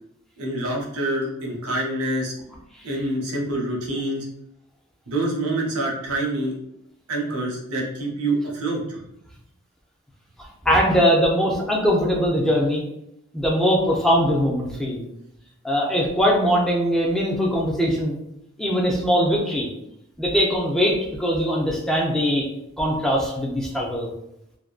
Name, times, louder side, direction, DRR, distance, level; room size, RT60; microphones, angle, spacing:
voice 1, 0.4-2.3 2.8-4.3 5.1-6.5 7.1-9.0, right 1 dB, 85° right, -1 dB, 0.7 m, -26 dB
voice 2, 10.4-12.8 13.3-15.0 15.6-18.2 18.6-19.7 20.2-22.5 22.8-24.1, equal, ahead, -3 dB, 0.3 m, -21 dB
2.5 x 2.2 x 2.4 m, 0.81 s
head